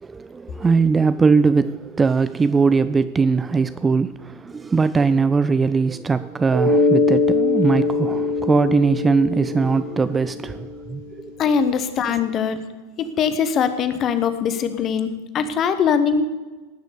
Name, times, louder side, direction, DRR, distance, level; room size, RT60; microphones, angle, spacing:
voice 1, 0.0-11.3, right 4 dB, 15° right, 0.3 m, -20 dB
Mallet percussion, 6.5-11.0, left 3 dB, 60° right, 4.1 m, -22 dB
voice 2, 11.4-12.6 13.0-16.2, left 6 dB, 30° left, 1.0 m, -21 dB
18.5 x 6.3 x 6.8 m
figure-of-eight pair, 90°, 0 cm